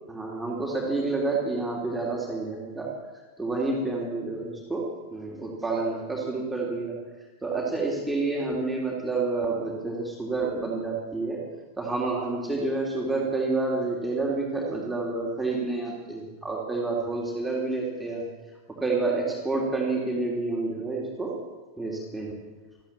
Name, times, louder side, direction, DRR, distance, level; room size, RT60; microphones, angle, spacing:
voice 1, 0.1-2.9 3.4-4.8 5.1-7.0 7.4-11.4 11.8-18.3 18.8-21.4 21.8-22.4, right 3 dB, 5° right, -3 dB, 3.3 m, -29 dB
14.0 x 13.5 x 7.4 m, 1.3 s
figure-of-eight pair, 90°, 0 cm